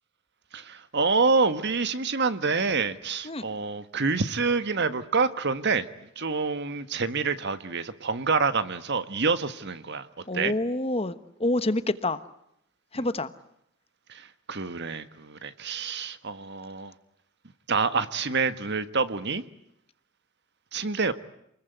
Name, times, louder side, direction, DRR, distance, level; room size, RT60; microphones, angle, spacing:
voice 1, 0.5-5.9 6.1-10.1 10.3-10.5 12.9-13.0 14.1-16.9 17.7-19.4 20.7-21.1, right 4 dB, 55° right, 12 dB, 1.6 m, -27 dB
voice 2, 10.3-12.2 12.9-13.3, left 2 dB, 30° left, 13 dB, 1.2 m, -27 dB
28.5 x 21.5 x 9.4 m, 0.79 s
head